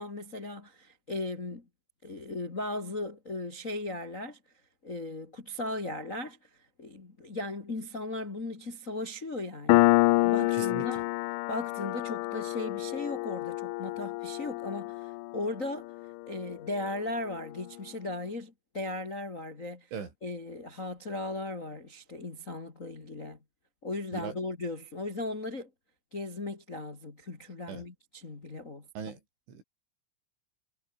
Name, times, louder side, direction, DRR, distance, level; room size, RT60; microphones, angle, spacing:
voice 1, 0.0-1.6 2.0-4.4 4.8-6.4 6.8-9.9 10.2-11.0 11.5-15.9 16.3-19.9 20.2-23.4 23.8-25.7 26.1-28.9, left 2 dB, 30° left, 1.4 m, -37 dB
Piano, 9.7-16.9, left 22 dB, 85° left, 3.0 m, -28 dB
voice 2, 10.5-10.8 19.9-20.1 24.1-24.4 27.7-27.8 29.0-29.2 29.5-29.6, right 6 dB, 80° right, 7.5 m, -38 dB
omnidirectional pair, 5.4 m